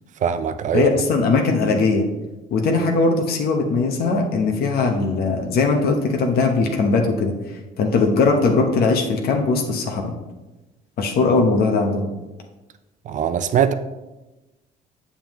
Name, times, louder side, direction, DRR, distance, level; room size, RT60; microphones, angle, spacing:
voice 1, 0.2-0.9 13.1-13.7, right 8 dB, 45° right, 0.5 m, -21 dB
voice 2, 0.7-2.0 2.5-7.4 7.8-10.1 11.0-12.1, left 3 dB, 65° left, 1.1 m, -19 dB
7.5 x 7.0 x 3.1 m
cardioid pair, 110°, 17 cm